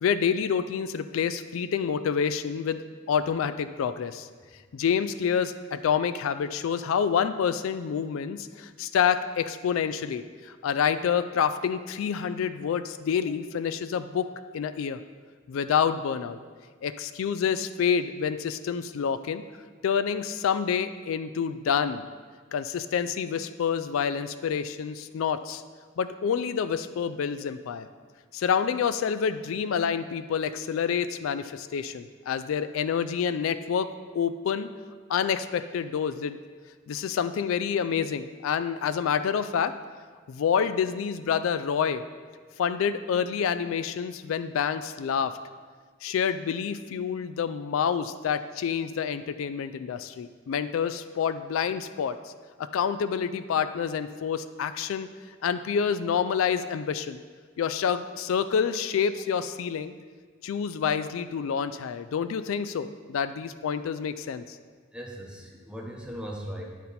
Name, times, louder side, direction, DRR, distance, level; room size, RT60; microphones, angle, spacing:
voice 1, 0.0-4.3 4.7-15.0 15.5-16.4 16.8-19.4 19.8-22.0 22.5-25.6 26.0-27.9 28.3-33.9 34.1-34.7 35.1-36.4 36.9-39.7 40.3-42.0 42.6-45.3 46.0-52.2 52.6-55.1 55.4-57.2 57.6-59.9 60.4-64.6, left 7 dB, 85° left, 12 dB, 0.3 m, -28 dB
voice 2, 64.9-66.6, equal, 5° right, -1 dB, 0.8 m, -38 dB
10.0 x 4.2 x 4.0 m, 1.6 s
head